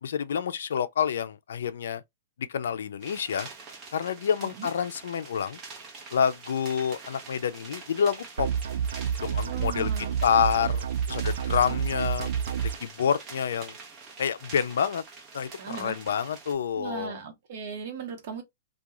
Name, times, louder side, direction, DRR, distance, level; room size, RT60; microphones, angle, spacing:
voice 1, 0.0-2.0 2.4-3.5 3.9-5.6 6.1-8.5 9.2-9.9 10.2-12.3 12.6-13.7 14.2-15.0 15.3-17.2, left 7 dB, 80° left, 0.4 m, -28 dB
sound 1, 3.0-16.5, right 4 dB, 25° right, 0.8 m, -45 dB
sound 2, 8.4-12.8, right 8 dB, 75° right, 0.3 m, -29 dB
voice 2, 9.4-10.1 11.5-11.8 15.6-16.0 16.8-18.4, right 6 dB, 50° right, 0.9 m, -38 dB
2.3 x 2.2 x 2.9 m
hypercardioid pair, 155°, 0 cm